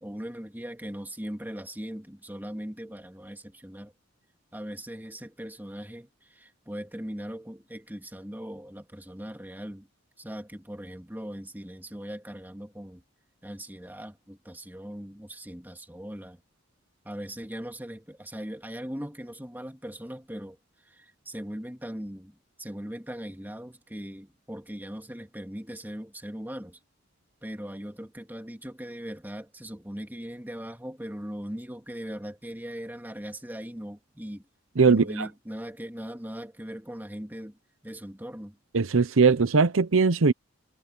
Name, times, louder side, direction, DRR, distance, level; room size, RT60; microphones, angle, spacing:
voice 1, 0.0-3.9 4.5-9.9 10.2-13.0 13.4-16.4 17.0-20.6 20.8-26.8 27.4-34.4 34.8-37.6 37.8-38.6, equal, 10° right, 2.3 m, -39 dB
voice 2, 34.8-35.3 38.7-40.3, right 4 dB, 75° right, 0.8 m, -20 dB
head